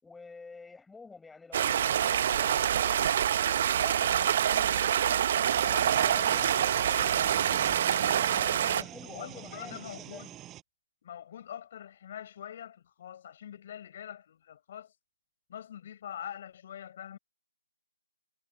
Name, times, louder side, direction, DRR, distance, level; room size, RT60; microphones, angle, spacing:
voice 1, 0.0-3.2 3.6-5.3 5.6-7.8 8.1-10.2, left 4 dB, 5° left, 6.4 m, -49 dB
Stream, 1.5-8.8, right 9 dB, 35° right, 0.7 m, -26 dB
sound 1, 5.5-10.6, right 13 dB, 10° right, 6.5 m, -46 dB
voice 2, 8.6-10.3 11.0-14.9 15.5-17.2, left 10 dB, 35° left, 6.2 m, -44 dB
figure-of-eight pair, 150°, 0 cm